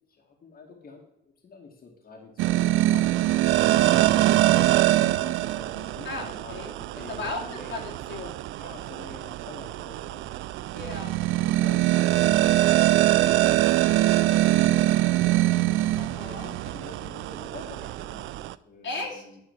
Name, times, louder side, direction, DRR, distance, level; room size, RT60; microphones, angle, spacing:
voice 1, 0.1-7.8 8.6-10.4 11.4-14.4 14.7-15.4 16.2-19.4, left 4 dB, 50° left, 0 dB, 2.4 m, -47 dB
sound 1, 2.4-18.5, right 16 dB, 90° right, 0.4 m, -23 dB
voice 2, 3.7-4.6 6.0-7.4 7.7-8.4 10.7-11.2 16.0-16.5 18.8-19.2, left 3 dB, 75° left, -2 dB, 2.7 m, -37 dB
10.0 x 6.0 x 7.4 m, 0.79 s
cardioid pair, 90°, 20 cm